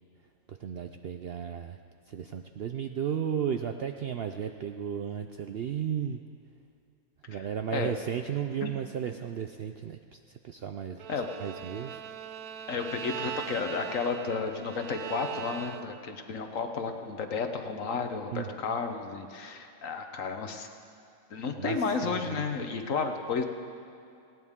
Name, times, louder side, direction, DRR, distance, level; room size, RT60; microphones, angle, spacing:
voice 1, 0.5-1.8 2.1-6.2 7.3-12.0 12.5-12.7 18.3-18.5 21.6-21.8 22.0-22.5, right 8 dB, 65° right, 6 dB, 0.6 m, -34 dB
Bowed string instrument, 11.0-16.2, right 8 dB, 90° right, 1.2 m, -40 dB
voice 2, 12.7-20.7 21.3-23.4, left 5 dB, 65° left, 6 dB, 1.4 m, -32 dB
19.5 x 17.0 x 3.7 m, 2.5 s
omnidirectional pair, 1.5 m